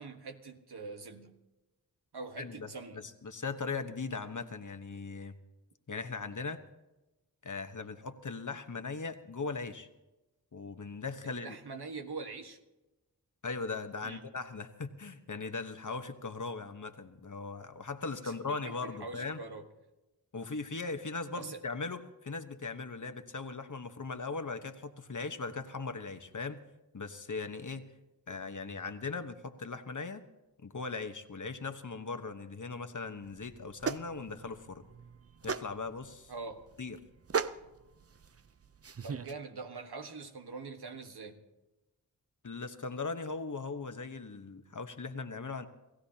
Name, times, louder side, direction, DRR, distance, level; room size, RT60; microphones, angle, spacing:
voice 1, 0.0-1.3 2.1-3.0 11.2-12.6 14.0-14.2 18.0-19.7 21.3-21.6 36.3-36.6 39.0-41.4, right 4 dB, 75° right, 1.5 m, -44 dB
voice 2, 2.4-2.7 2.9-5.3 5.9-6.6 7.4-9.9 10.5-11.6 13.4-19.4 20.3-26.6 26.9-27.8 28.3-30.2 30.6-34.8 35.4-36.3 36.8-37.0 42.4-45.7, left 4 dB, 50° left, 1.2 m, -39 dB
sound 1, 33.2-39.3, right 6 dB, 35° right, 0.6 m, -39 dB
29.0 x 15.5 x 2.9 m
cardioid pair, 45°, 40 cm